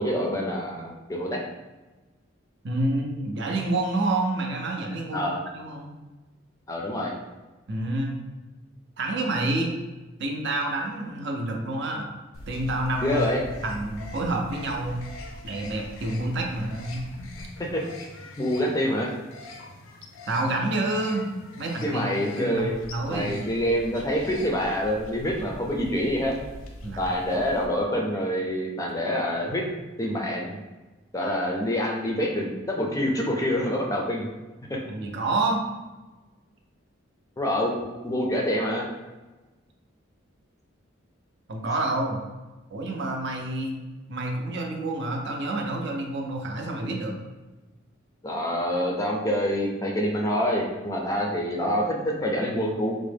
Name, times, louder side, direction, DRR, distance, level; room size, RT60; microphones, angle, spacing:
voice 1, 0.0-1.4 5.1-5.4 6.7-7.1 13.0-13.4 17.7-17.8 18.4-19.1 21.8-22.7 23.1-26.4 27.0-29.6 30.0-30.6 31.1-34.3 34.7-34.8 37.4-38.8 48.2-53.0, equal, 15° left, -1 dB, 0.4 m, -26 dB
voice 2, 2.6-5.9 7.7-8.2 9.0-9.7 10.2-12.0 12.5-13.2 13.6-15.0 15.4-17.1 20.3-21.3 21.6-23.3 26.8-27.1 34.9-35.6 41.5-42.2 42.7-43.8 44.1-47.1, right 2 dB, 60° right, 1 dB, 0.5 m, -28 dB
sound 1, 12.3-27.7, left 1 dB, 85° left, 0.5 m, -42 dB
3.6 x 2.1 x 3.3 m, 1.2 s
head